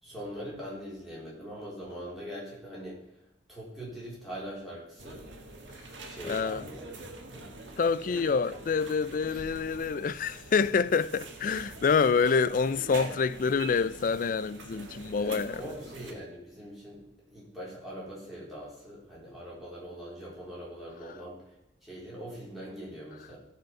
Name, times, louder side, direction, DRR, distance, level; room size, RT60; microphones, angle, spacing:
voice 1, 0.0-3.0 3.5-5.2 6.0-7.4 8.1-8.2 8.5-8.6 9.3-9.6 12.9-13.1 15.2-17.0 17.3-21.5 21.8-23.4, equal, ahead, 4.0 m, -42 dB
sound 1, 5.0-16.1, right 2 dB, 80° right, 1.7 m, -45 dB
voice 2, 6.2-6.6 7.8-15.7, left 5 dB, 45° left, 0.3 m, -27 dB
14.5 x 5.1 x 5.9 m
head